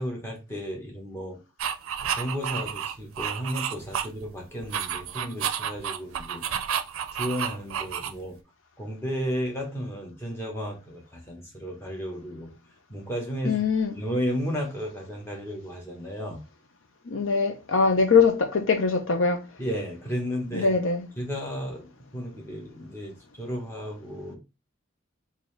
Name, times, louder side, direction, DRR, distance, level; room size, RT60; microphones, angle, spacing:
voice 1, 0.0-1.4 2.0-6.4 7.1-8.4 8.8-12.5 12.9-13.6 13.9-16.4 19.6-20.7 21.2-24.4, equal, 10° left, 1.1 m, -33 dB
sound 1, 1.6-4.3 4.6-8.4, right 8 dB, 90° right, 0.4 m, -31 dB
voice 2, 13.4-14.0 17.1-19.4 20.5-21.0, left 5 dB, 65° left, 0.6 m, -22 dB
3.9 x 2.7 x 3.2 m
head